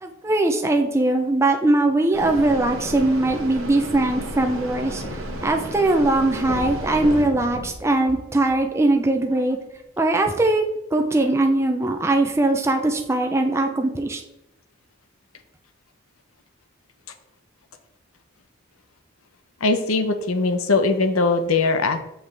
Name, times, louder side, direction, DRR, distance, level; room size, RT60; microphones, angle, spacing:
voice 1, 0.0-9.6 10.0-10.6 10.9-14.2, right 2 dB, 10° right, 4 dB, 0.5 m, -21 dB
sound 1, 2.1-7.2, right 1 dB, 70° right, 1.3 m, -33 dB
sound 2, 4.2-5.6 5.9-6.0 6.4-9.0 9.7-9.8, left 1 dB, 40° left, 1.2 m, -36 dB
voice 2, 19.6-22.0, left 3 dB, 80° left, 8 dB, 0.8 m, -20 dB
7.1 x 6.0 x 3.3 m, 0.86 s
head